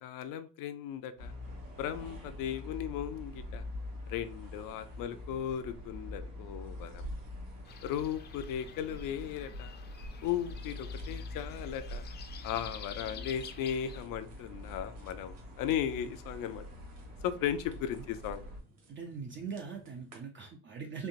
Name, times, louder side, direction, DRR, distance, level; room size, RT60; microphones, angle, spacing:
voice 1, 0.0-1.3 1.8-3.6 4.1-7.1 7.8-9.7 10.2-12.0 12.4-16.6 17.2-18.5, left 9 dB, 75° left, 0.6 m, -36 dB
sound 1, 1.2-18.6, left 1 dB, 80° right, 1.7 m, -44 dB
sound 2, 7.6-14.0, left 7 dB, 30° left, 0.5 m, -50 dB
sound 3, 9.9-20.2, right 2 dB, 50° right, 1.4 m, -62 dB
voice 2, 18.9-21.1, right 5 dB, 35° right, 0.5 m, -41 dB
4.4 x 2.9 x 2.5 m
cardioid pair, 140°, 33 cm